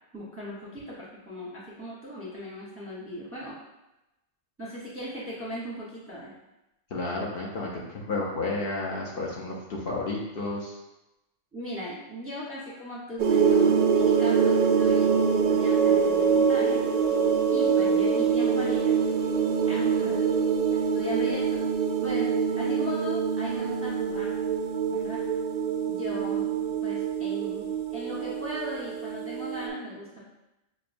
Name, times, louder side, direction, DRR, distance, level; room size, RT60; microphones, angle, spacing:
voice 1, 0.1-3.5 4.6-6.3 11.5-15.2 15.5-16.8 17.5-19.3 19.7-20.2 20.7-21.6 22.0-24.4 24.9-25.2 25.9-26.5 26.8-30.3, equal, 15° right, -7 dB, 0.7 m, -38 dB
voice 2, 6.9-10.8, left 2 dB, 60° left, -4 dB, 0.8 m, -31 dB
sound 1, 13.2-29.7, right 6 dB, 65° right, 0.4 m, -24 dB
6.3 x 2.1 x 2.5 m, 0.95 s
omnidirectional pair, 1.2 m